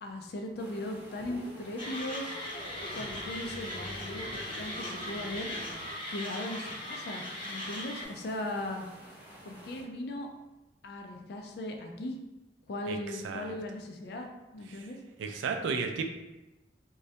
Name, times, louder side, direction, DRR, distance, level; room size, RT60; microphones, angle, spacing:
voice 1, 0.0-2.4 2.9-8.9 9.4-10.3 10.8-12.2 12.7-14.3 14.5-15.0, left 1 dB, 60° left, 3 dB, 0.3 m, -38 dB
sound 1, 0.6-9.8, equal, 10° right, 0.5 m, -51 dB
sound 2, 1.2-6.0, equal, 85° left, 0.8 m, -46 dB
Mechanisms, 1.8-8.0, left 1 dB, 30° left, 0.8 m, -39 dB
voice 2, 12.9-13.5 14.7-14.9 15.2-16.0, right 5 dB, 85° right, 5 dB, 0.3 m, -34 dB
2.2 x 2.1 x 2.7 m, 1.0 s
head